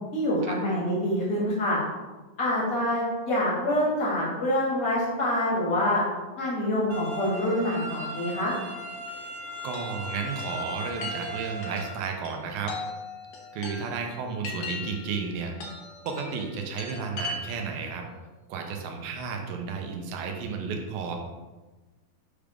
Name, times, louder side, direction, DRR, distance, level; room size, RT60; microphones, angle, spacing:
voice 1, 0.1-1.8 2.4-6.0 6.4-8.5, left 1 dB, 35° left, -5 dB, 1.5 m, -26 dB
sound 1, 6.9-11.9, right 1 dB, 70° right, 1.0 m, -37 dB
voice 2, 9.6-12.7 13.5-15.5 16.1-18.1 18.5-21.2, right 5 dB, 90° right, 3 dB, 2.5 m, -33 dB
Chime, 9.7-17.8, left 3 dB, 65° left, 1.8 m, -40 dB
7.0 x 3.5 x 5.1 m, 1.2 s
omnidirectional pair, 4.1 m